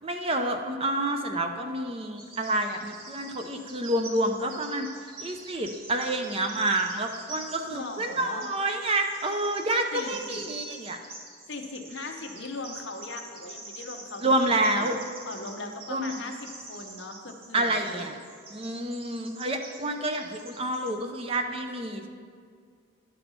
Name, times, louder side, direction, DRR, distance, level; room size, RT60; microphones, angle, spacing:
voice 1, 0.0-4.9 5.2-11.0 14.2-15.0 15.9-16.1 17.5-18.2 18.5-22.1, right 1 dB, 25° right, 5 dB, 0.4 m, -28 dB
Bird vocalization bird call bird song, 2.2-20.9, right 2 dB, 45° right, 1.0 m, -46 dB
voice 2, 7.7-8.5 9.9-10.4 11.5-14.9 15.3-18.0, left 3 dB, 55° left, 3 dB, 0.8 m, -39 dB
11.0 x 4.3 x 5.5 m, 2.1 s
head